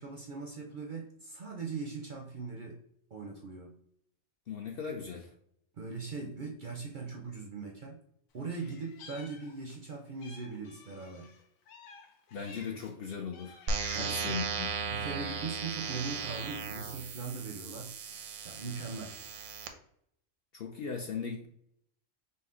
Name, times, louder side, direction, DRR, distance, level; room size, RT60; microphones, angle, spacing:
voice 1, 0.0-2.8 3.1-3.7 5.8-8.0 8.3-11.3 13.9-14.4 14.9-17.9 18.4-19.2, right 4 dB, 55° right, 1 dB, 0.6 m, -40 dB
voice 2, 4.5-5.3 12.3-13.6 14.0-14.7 20.5-21.5, left 6 dB, 65° left, 3 dB, 0.6 m, -38 dB
Meow, 8.4-9.8 10.2-12.9 13.3-14.3 14.9-15.7, left 5 dB, 85° left, 1.1 m, -52 dB
sound 1, 13.7-19.7, right 5 dB, 90° right, 1.0 m, -36 dB
5.3 x 2.1 x 3.7 m, 0.69 s
omnidirectional pair, 1.4 m